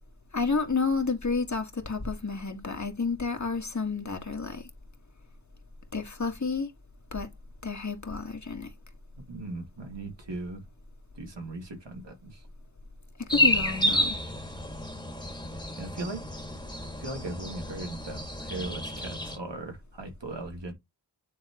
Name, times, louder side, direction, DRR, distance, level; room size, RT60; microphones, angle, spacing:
voice 1, 0.3-4.7 5.9-6.7 7.1-7.3 7.6-8.7 13.3-14.2, left 4 dB, 40° left, 1.8 m, -30 dB
voice 2, 9.3-10.6 11.1-12.5 15.8-16.2 17.0-20.7, right 2 dB, 75° right, 2.3 m, -38 dB
sound 1, 13.3-19.4, left 1 dB, 10° left, 1.9 m, -30 dB
9.9 x 3.5 x 3.0 m
cardioid pair, 50°, 43 cm